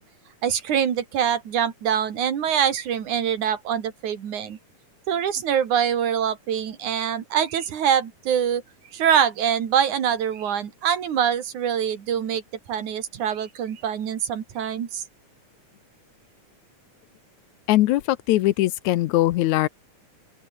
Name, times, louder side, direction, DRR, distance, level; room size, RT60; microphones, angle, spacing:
voice 1, 0.4-4.6 5.1-8.6 8.9-12.4 12.7-15.0, right 8 dB, 80° right, 3.7 m, -24 dB
voice 2, 17.7-19.7, left 16 dB, 80° left, 2.1 m, -21 dB
open air
omnidirectional pair, 3.4 m